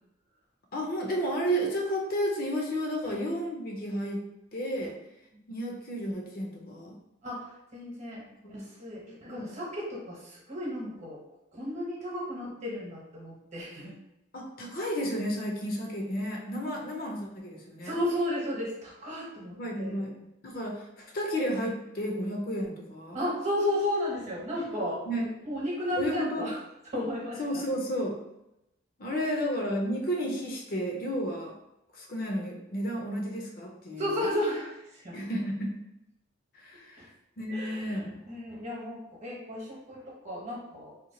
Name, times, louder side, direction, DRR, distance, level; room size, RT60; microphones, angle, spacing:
voice 1, 0.7-4.2 4.5-5.0 5.5-7.0 8.4-8.8 9.1-9.2 14.3-17.9 19.5-20.1 20.4-23.2 25.1-25.3 26.0-26.5 27.4-28.2 29.0-31.5 31.9-34.2 35.1-35.8 36.5-37.1 37.4-38.2, equal, 45° left, 0 dB, 0.6 m, -32 dB
voice 2, 7.2-11.2 11.5-14.0 17.8-20.1 23.1-26.6 26.9-27.6 29.1-29.3 34.0-35.3 37.0-37.1 37.5-41.0, left 1 dB, 35° right, -4 dB, 1.0 m, -34 dB
2.8 x 2.3 x 3.8 m, 0.87 s
head